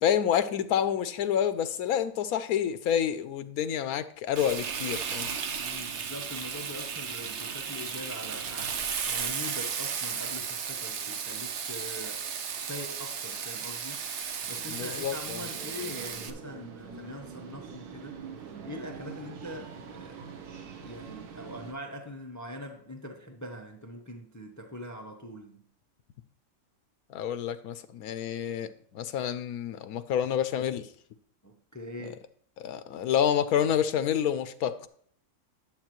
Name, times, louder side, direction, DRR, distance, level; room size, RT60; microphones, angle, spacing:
voice 1, 0.0-5.3 14.6-15.4 27.1-30.9 32.6-34.9, left 9 dB, 75° left, 1.1 m, -28 dB
Frying (food), 4.4-16.3, right 6 dB, 55° right, 0.9 m, -35 dB
voice 2, 5.6-12.3 12.7-14.0 14.5-18.2 18.6-20.3 20.8-25.6 31.4-32.2, left 1 dB, 20° left, 0.5 m, -42 dB
sound 1, 14.4-21.7, right 6 dB, 80° right, 1.4 m, -45 dB
10.5 x 7.4 x 3.0 m
omnidirectional pair, 1.6 m